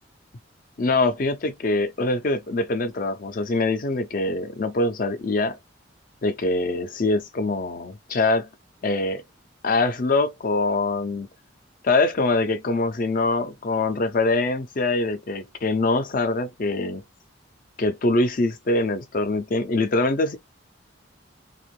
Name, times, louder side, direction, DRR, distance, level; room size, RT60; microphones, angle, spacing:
voice 1, 0.8-5.6 6.2-8.5 8.8-9.2 9.6-11.3 11.8-17.0 17.8-20.4, left 2 dB, 45° left, 0.5 m, -23 dB
2.5 x 2.4 x 3.1 m
head